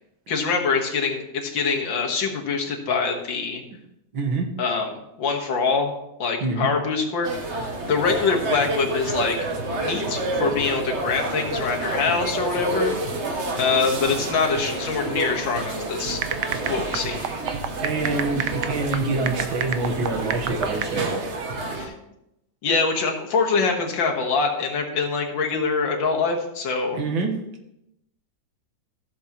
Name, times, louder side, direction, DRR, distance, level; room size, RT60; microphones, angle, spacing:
voice 1, 0.3-3.6 4.6-5.9 6.2-9.4 9.8-12.9 13.6-16.2 16.7-17.2 21.7-21.9 22.6-27.0, left 4 dB, 75° left, 1 dB, 2.1 m, -24 dB
voice 2, 4.1-4.5 6.4-6.7 10.4-10.6 17.8-21.2 26.9-27.4, right 3 dB, 85° right, 3 dB, 2.1 m, -26 dB
sound 1, 7.2-21.9, right 2 dB, 40° right, 1.3 m, -29 dB
sound 2, 16.0-20.8, right 9 dB, 70° right, 1.2 m, -31 dB
15.0 x 7.1 x 3.0 m, 0.84 s
omnidirectional pair, 2.1 m